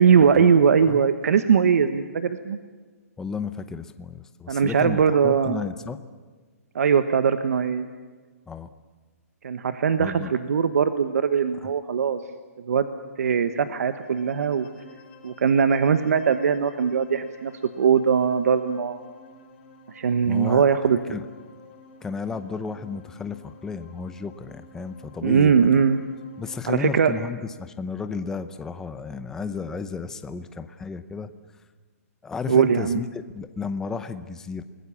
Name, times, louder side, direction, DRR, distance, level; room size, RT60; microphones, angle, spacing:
voice 1, 0.0-2.6 4.5-5.6 6.7-7.9 9.4-12.2 12.6-12.9 13.2-14.7 15.2-19.0 19.9-21.0 25.2-26.0 26.7-27.1 32.5-33.0, right 6 dB, 70° right, 10 dB, 1.2 m, -20 dB
voice 2, 3.2-6.0 8.5-8.7 10.0-10.3 11.6-11.7 20.3-20.6 21.1-21.2 22.0-25.6 26.4-31.3 32.2-34.6, left 5 dB, 5° left, 10 dB, 0.7 m, -33 dB
sound 1, 13.7-27.2, left 3 dB, 35° left, 3.3 m, -51 dB
29.0 x 20.0 x 7.1 m, 1.4 s
hypercardioid pair, 165°, 8 cm